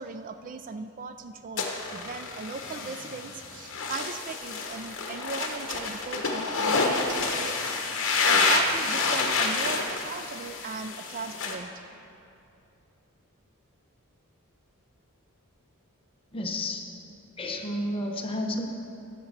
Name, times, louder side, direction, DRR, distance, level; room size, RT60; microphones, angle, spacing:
voice 1, 0.0-7.9 8.2-11.8, right 4 dB, 40° right, 9 dB, 0.3 m, -38 dB
sound 1, 1.6-11.6, left 3 dB, 60° left, 1.2 m, -28 dB
voice 2, 16.3-16.9 17.4-18.7, left 1 dB, 25° left, 1 dB, 0.9 m, -31 dB
11.0 x 7.2 x 6.6 m, 2.6 s
head